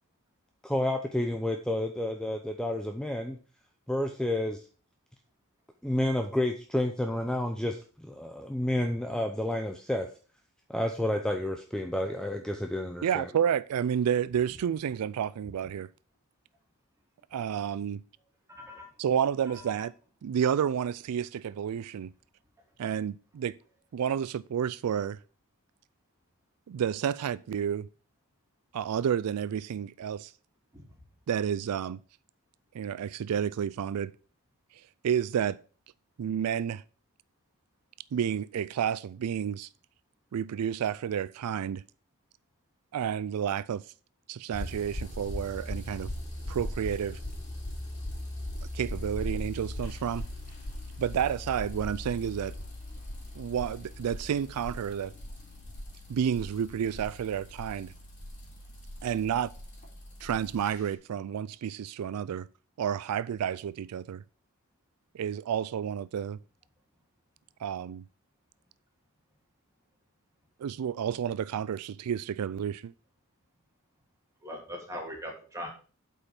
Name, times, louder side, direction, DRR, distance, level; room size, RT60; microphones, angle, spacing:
voice 1, 0.6-3.4 3.9-4.6 5.8-10.1 10.7-13.3, left 1 dB, 5° left, 0.6 m, -30 dB
voice 2, 13.0-15.9 17.3-18.0 19.0-19.9 20.2-22.1 22.8-23.6 23.9-25.2 26.7-27.9 28.7-30.3 31.3-32.0 32.7-34.1 35.0-35.6 36.2-36.8 38.1-39.7 40.3-41.8 42.9-43.8 44.3-46.1 46.5-47.2 48.7-50.2 51.0-52.6 53.3-55.1 56.1-57.9 59.0-59.5 60.2-62.5 62.8-64.2 65.1-66.4 67.6-68.0 70.6-72.9, right 8 dB, 85° right, 0.4 m, -30 dB
voice 3, 18.5-18.9 19.7-19.8 30.7-31.0 74.4-75.7, equal, 15° right, 3.0 m, -40 dB
sound 1, 44.5-60.8, left 1 dB, 35° left, 3.1 m, -39 dB
8.3 x 5.5 x 5.9 m
head